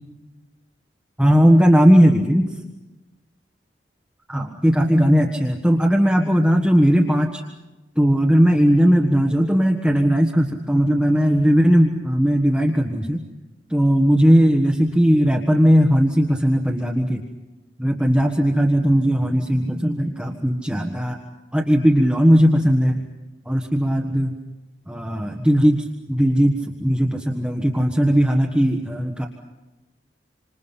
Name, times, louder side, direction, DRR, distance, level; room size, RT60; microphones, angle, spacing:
voice 1, 1.2-2.5 4.3-7.4 8.0-13.2 13.7-17.2 17.8-21.2 21.5-23.0 23.4-24.4 24.9-29.3, equal, 5° right, 0 dB, 1.5 m, -18 dB
28.0 x 26.0 x 5.8 m, 1.1 s
head